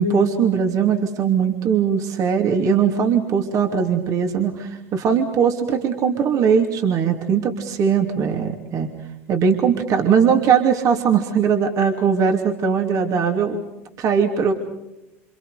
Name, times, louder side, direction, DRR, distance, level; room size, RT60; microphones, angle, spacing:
voice 1, 0.0-8.9 9.3-13.6 14.0-14.5, right 6 dB, 50° right, 3 dB, 3.0 m, -20 dB
28.0 x 28.0 x 5.1 m, 0.96 s
hypercardioid pair, 95°, 7 cm